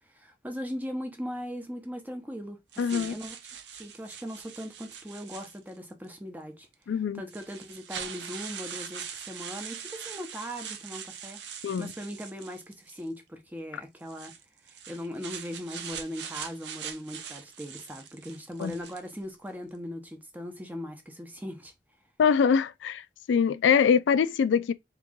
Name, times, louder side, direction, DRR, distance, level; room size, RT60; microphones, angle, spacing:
voice 1, 0.0-3.4 3.7-11.4 11.8-14.3 14.6-21.7, equal, 10° right, 0.7 m, -39 dB
sound 1, 2.7-5.9 6.7-6.8 7.3-13.1 14.0-19.2, right 7 dB, 75° right, 0.6 m, -42 dB
voice 2, 2.8-3.1 6.9-7.2 11.6-11.9 18.6-18.8 22.2-23.0 23.3-24.7, left 6 dB, 90° left, 0.3 m, -23 dB
3.6 x 3.0 x 3.6 m
head